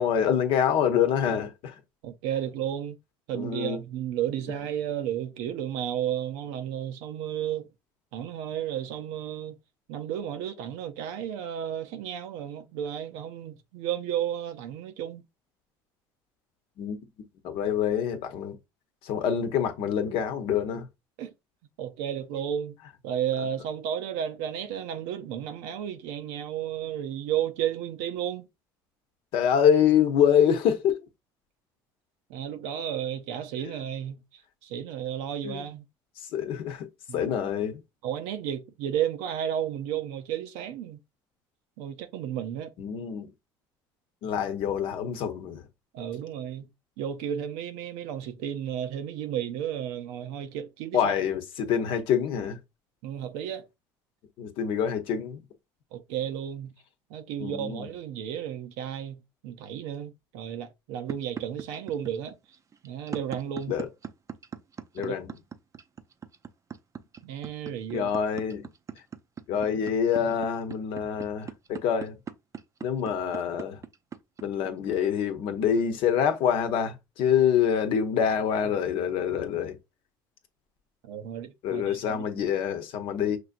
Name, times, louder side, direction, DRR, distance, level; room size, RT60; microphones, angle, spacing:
voice 1, 0.0-1.7 3.3-3.8 16.8-17.0 17.4-18.6 19.0-20.9 29.3-31.0 35.4-35.7 36.3-36.9 37.1-37.8 42.8-43.3 44.2-45.6 50.9-52.6 54.4-55.4 57.4-57.9 63.7-63.9 64.9-65.4 67.9-68.7 69.5-72.2 72.8-73.8 74.4-79.8 81.6-83.4, left 8 dB, 65° left, 0.8 m, -26 dB
voice 2, 2.0-3.0 3.3-7.7 8.1-9.6 9.9-15.3 21.2-21.3 21.8-22.8 23.0-28.5 32.3-34.2 34.6-35.9 37.1-37.3 38.0-41.0 41.8-42.7 45.9-46.7 47.0-51.0 53.0-53.7 55.9-56.8 57.1-62.4 62.8-63.8 65.0-65.1 67.2-68.1 81.0-82.3, right 10 dB, 75° right, 0.6 m, -33 dB
sound 1, 61.1-75.6, right 7 dB, 35° right, 0.5 m, -39 dB
6.0 x 2.7 x 2.5 m
supercardioid pair, 80°, 10 cm